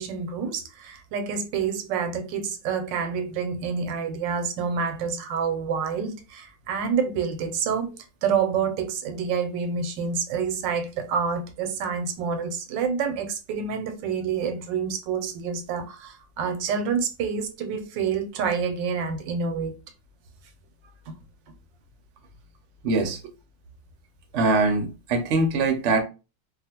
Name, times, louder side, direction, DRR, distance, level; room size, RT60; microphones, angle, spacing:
voice 1, 0.0-19.8 21.1-21.2, right 6 dB, 85° right, 1.3 m, -28 dB
voice 2, 22.8-23.2 24.3-26.0, right 3 dB, 60° right, 0.7 m, -22 dB
2.9 x 2.4 x 2.8 m
omnidirectional pair, 1.9 m